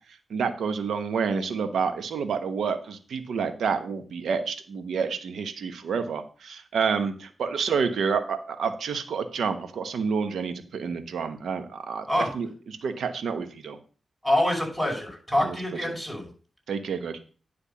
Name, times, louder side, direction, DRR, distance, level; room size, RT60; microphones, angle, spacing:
voice 1, 0.1-12.1 12.3-13.8 15.4-15.6 16.7-17.2, right 5 dB, 80° right, 9 dB, 1.0 m, -29 dB
voice 2, 14.2-16.3, left 1 dB, 10° right, 1 dB, 5.5 m, -25 dB
10.0 x 3.5 x 6.9 m, 0.39 s
cardioid pair, 55°, 0 cm